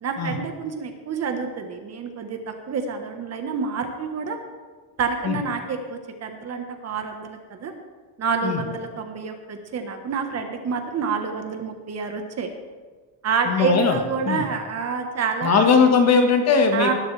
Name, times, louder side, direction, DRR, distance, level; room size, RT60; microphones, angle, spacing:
voice 1, 0.0-4.4 5.0-7.7 8.2-12.5 13.2-15.7 16.7-16.9, right 5 dB, 35° right, 5 dB, 1.3 m, -28 dB
voice 2, 13.5-14.0 14.3-14.4 15.4-16.9, left 5 dB, 35° left, 4 dB, 1.6 m, -19 dB
18.5 x 12.0 x 3.4 m, 1.4 s
cardioid pair, 160°, 44 cm